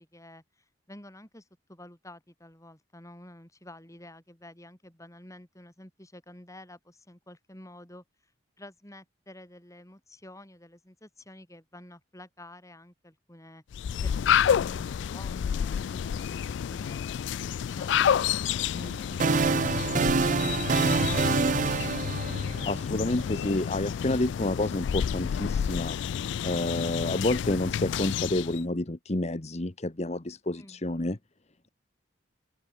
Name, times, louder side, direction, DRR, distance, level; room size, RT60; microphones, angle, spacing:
voice 1, 0.0-8.3 8.6-21.8 30.6-30.8, left 1 dB, 15° left, 5.5 m, -50 dB
sound 1, 13.7-28.6, left 8 dB, 65° left, 0.3 m, -29 dB
sound 2, 18.8-23.0, right 4 dB, 40° right, 0.5 m, -26 dB
voice 2, 22.6-26.0 26.4-31.2, left 1 dB, 35° left, 1.2 m, -29 dB
open air
head